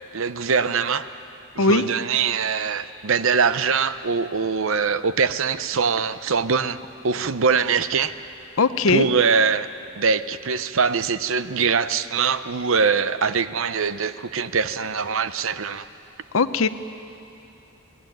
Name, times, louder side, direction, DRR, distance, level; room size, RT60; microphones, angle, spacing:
voice 1, 0.1-1.1 1.5-6.8 7.0-8.1 8.9-9.7 10.0-15.9, right 5 dB, 65° right, 13 dB, 0.7 m, -22 dB
voice 2, 8.6-9.1 16.3-16.7, left 3 dB, 65° left, 12 dB, 0.8 m, -19 dB
23.0 x 18.5 x 9.2 m, 2.7 s
head